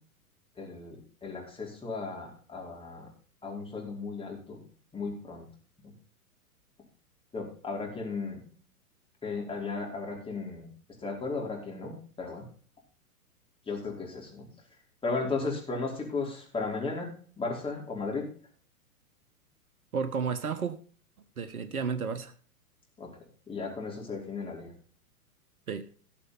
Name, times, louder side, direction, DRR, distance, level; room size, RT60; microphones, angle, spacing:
voice 1, 0.6-3.1 3.4-4.6 4.9-5.4 5.8-5.9 7.3-8.4 9.2-10.7 11.0-12.5 13.7-14.5 15.0-17.1 17.4-18.3 23.0-23.1 23.5-24.7, left 4 dB, 10° left, 4.8 m, -35 dB
voice 2, 19.9-20.8 21.4-22.3 25.7-25.9, right 6 dB, 70° right, 1.5 m, -32 dB
18.5 x 6.7 x 4.2 m
figure-of-eight pair, 110°, 45 cm